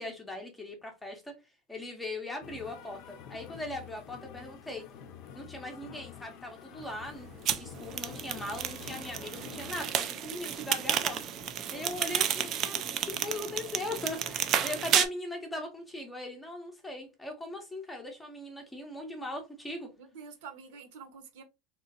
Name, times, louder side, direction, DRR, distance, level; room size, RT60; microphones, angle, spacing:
voice 1, 0.0-1.3 1.7-4.8 5.3-11.2 11.7-19.9, left 2 dB, 5° left, 0.7 m, -39 dB
sound 1, 2.4-9.9, left 8 dB, 45° left, 0.5 m, -48 dB
sound 2, 7.5-15.1, right 9 dB, 30° right, 0.4 m, -31 dB
voice 2, 20.0-21.4, right 5 dB, 70° right, 1.1 m, -47 dB
3.6 x 2.9 x 2.8 m
cardioid pair, 180°, 0 cm